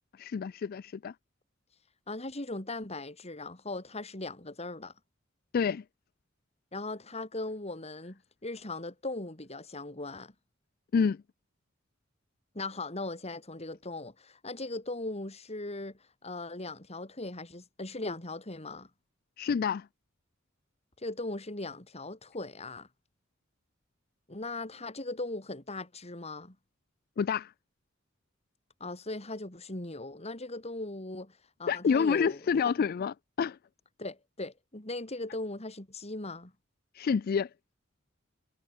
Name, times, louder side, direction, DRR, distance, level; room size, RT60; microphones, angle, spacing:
voice 1, 0.2-1.1 5.5-5.8 10.9-11.2 19.4-19.9 27.2-27.5 31.7-33.6 36.9-37.5, left 6 dB, 50° left, 0.3 m, -28 dB
voice 2, 2.1-4.9 6.7-10.3 12.5-18.9 21.0-22.9 24.3-26.5 28.8-32.7 34.0-36.5, left 2 dB, 35° left, 3.4 m, -39 dB
head